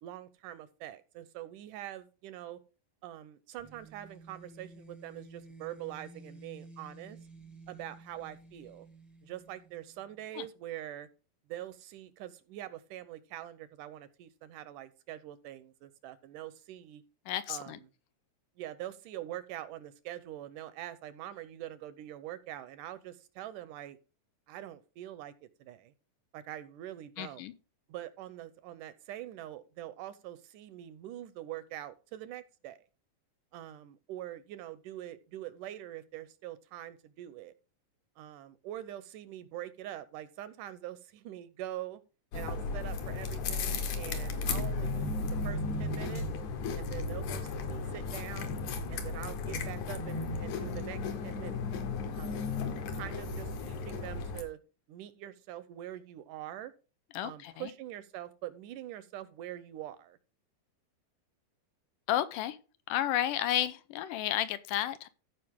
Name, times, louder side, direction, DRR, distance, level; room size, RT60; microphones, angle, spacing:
voice 1, 0.0-2.6 3.0-7.2 7.7-8.9 9.2-11.1 11.5-17.0 17.5-17.9 18.6-24.0 24.5-25.9 26.3-27.5 27.9-32.8 33.5-37.5 38.2-42.0 42.3-46.3 46.7-48.6 48.9-51.6 52.1-52.5 52.9-54.6 54.9-56.7 57.2-60.2, right 13 dB, 80° right, 2.0 m, -44 dB
sound 1, 3.6-10.2, right 2 dB, ahead, 0.5 m, -53 dB
voice 2, 17.3-17.8 27.2-27.5 57.1-57.5 62.1-62.6 62.9-65.1, left 12 dB, 80° left, 2.2 m, -32 dB
sound 2, 42.3-54.4, left 3 dB, 65° left, 2.3 m, -35 dB
14.5 x 5.3 x 3.6 m
omnidirectional pair, 4.0 m